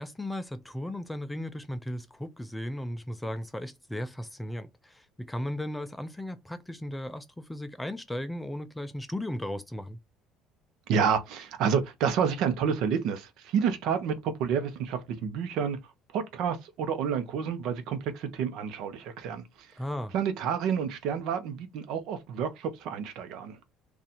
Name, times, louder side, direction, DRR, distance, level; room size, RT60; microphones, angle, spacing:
voice 1, 0.0-10.0 19.8-20.1, left 1 dB, 5° left, 0.4 m, -36 dB
voice 2, 10.9-15.8 16.1-19.4 20.1-23.6, right 7 dB, 65° right, 0.8 m, -29 dB
2.7 x 2.4 x 4.1 m
cardioid pair, 135°, 0 cm